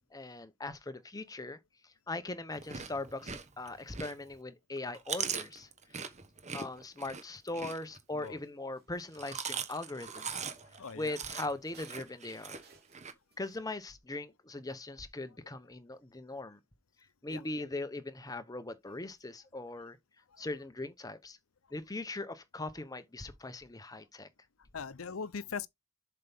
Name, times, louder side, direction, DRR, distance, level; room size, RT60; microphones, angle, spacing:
voice 1, 0.1-1.6 2.1-5.7 6.5-10.4 10.9-12.6 13.4-16.6 17.2-20.0 20.4-21.4 21.7-24.3, left 2 dB, 20° left, 0.9 m, -40 dB
Chewing mastication, 2.5-4.4 4.8-8.3 9.0-13.1, right 6 dB, 35° right, 1.2 m, -40 dB
sound 1, 6.9-10.5 10.8-13.6, right 2 dB, 50° right, 3.4 m, -59 dB
voice 2, 10.6-11.2 17.3-17.6 20.3-20.4 24.7-25.7, left 5 dB, 85° left, 0.7 m, -41 dB
7.6 x 5.6 x 3.5 m
head